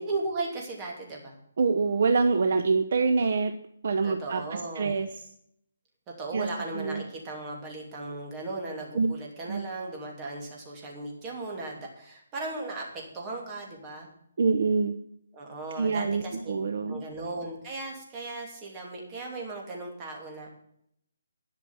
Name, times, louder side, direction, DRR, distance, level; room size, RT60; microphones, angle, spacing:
voice 1, 0.0-1.3 4.0-5.0 6.2-14.1 15.3-16.5 16.9-20.5, right 2 dB, 15° right, -1 dB, 2.7 m, -37 dB
voice 2, 1.6-3.5 3.8-5.1 6.3-6.5 6.7-7.0 8.9-9.1 9.5-9.6 14.4-15.0 15.8-17.0, right 4 dB, 45° right, 9 dB, 0.8 m, -25 dB
11.5 x 6.0 x 8.8 m, 0.70 s
hypercardioid pair, 175°, 0 cm